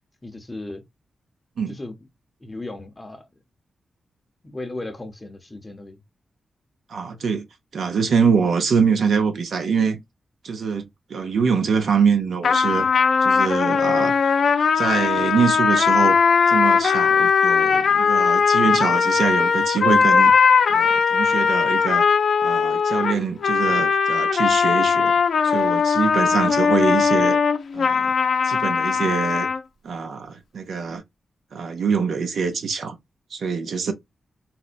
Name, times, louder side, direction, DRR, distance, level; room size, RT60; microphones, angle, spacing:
voice 1, 0.2-0.8 1.7-2.0 2.4-3.2 4.4-6.0, left 2 dB, 15° left, 0.6 m, -35 dB
voice 2, 6.9-7.4 7.7-10.0 10.4-12.9 13.2-14.1 14.7-16.2 16.5-20.3 20.7-22.1 22.4-25.1 25.4-27.4 27.7-28.1 28.4-29.5 29.8-31.0 31.5-32.9 33.3-33.9, right 5 dB, 70° right, 0.6 m, -24 dB
sound 1, 12.4-29.6, left 6 dB, 60° left, 0.5 m, -19 dB
4.2 x 2.1 x 2.4 m
wide cardioid pair, 165°, 0 cm